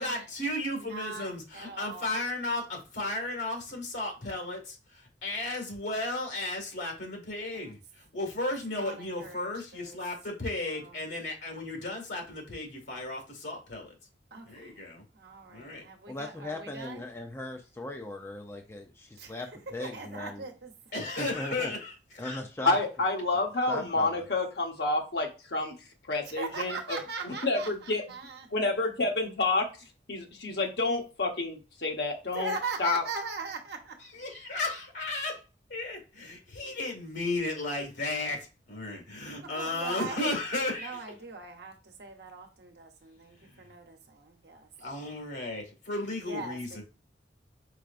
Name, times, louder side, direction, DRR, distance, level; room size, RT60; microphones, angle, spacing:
voice 1, 0.0-13.9 14.4-15.1 15.5-15.9 20.9-22.4 34.1-35.4 35.7-41.0 43.4-43.7 44.8-46.8, left 2 dB, 80° left, 1.9 m, -34 dB
voice 2, 0.8-2.2 7.5-7.7 8.7-10.0 10.6-11.0 14.3-14.8 15.1-17.1 19.2-19.3 19.8-20.7 26.3-28.5 32.3-34.0 39.4-40.3 40.8-44.7 46.2-46.8, right 4 dB, 65° right, 0.9 m, -40 dB
voice 3, 16.1-20.4 21.0-21.7 22.2-22.8 23.7-24.3, left 2 dB, 15° left, 0.5 m, -38 dB
voice 4, 22.6-25.7 26.1-27.0 27.2-28.0 28.5-29.7 30.1-32.5 32.8-33.0, left 2 dB, 65° left, 1.1 m, -29 dB
4.8 x 4.3 x 2.5 m
head